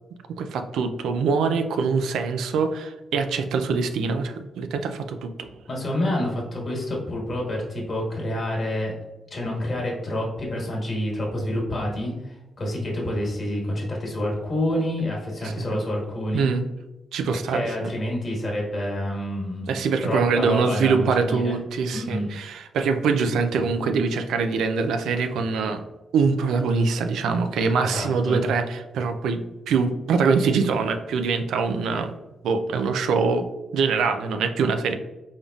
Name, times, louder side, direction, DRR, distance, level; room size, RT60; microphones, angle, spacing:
voice 1, 0.4-5.5 15.4-15.7 16.3-16.6 17.1-17.9 19.7-25.8 26.1-32.1 32.4-33.5 33.7-35.0, right 5 dB, 85° right, 7 dB, 0.4 m, -24 dB
voice 2, 5.7-8.9 9.3-16.5 17.5-19.7 20.0-21.6 21.9-22.3 27.8-28.4, left 1 dB, 45° left, -2 dB, 1.4 m, -28 dB
3.9 x 3.5 x 2.3 m, 1.0 s
cardioid pair, 80°, 0 cm